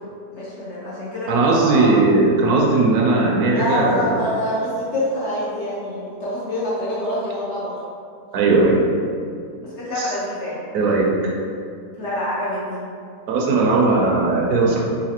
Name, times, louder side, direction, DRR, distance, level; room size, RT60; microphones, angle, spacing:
voice 1, 0.3-1.9 3.5-7.8 9.6-10.7 12.0-12.8, left 1 dB, 60° left, -8 dB, 0.8 m, -26 dB
voice 2, 1.3-4.2 8.3-8.8 10.0-10.1 10.7-11.3 13.3-14.8, right 3 dB, 75° right, -2 dB, 1.0 m, -18 dB
4.0 x 2.6 x 2.9 m, 2.3 s
omnidirectional pair, 1.7 m